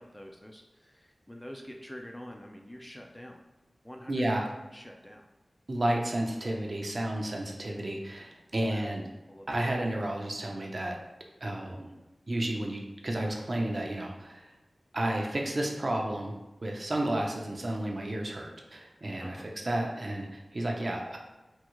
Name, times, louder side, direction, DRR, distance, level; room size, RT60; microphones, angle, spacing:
voice 1, 0.0-3.4 3.8-4.2 4.7-5.3 8.6-8.8 9.3-9.5 19.2-19.4, equal, 15° left, 2 dB, 0.3 m, -46 dB
voice 2, 4.1-4.5 5.7-9.0 9.5-11.0 11.4-11.9 12.3-14.5 14.9-16.3 16.6-21.2, right 1 dB, 45° right, 0 dB, 0.5 m, -32 dB
3.5 x 2.0 x 3.0 m, 1.1 s
wide cardioid pair, 90°, 0 cm